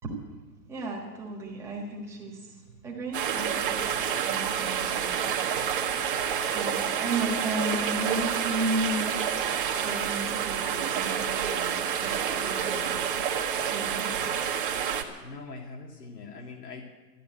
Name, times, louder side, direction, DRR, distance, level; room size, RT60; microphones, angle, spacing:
voice 1, 0.7-5.6 6.5-9.1 9.8-13.2 13.7-14.1, right 2 dB, 5° right, -3 dB, 1.5 m, -34 dB
sound 1, 3.1-15.0, right 8 dB, 30° right, 1.3 m, -28 dB
voice 2, 15.2-16.9, left 4 dB, 70° left, 1 dB, 2.3 m, -42 dB
13.5 x 11.0 x 9.1 m, 1.3 s
hypercardioid pair, 165°, 50 cm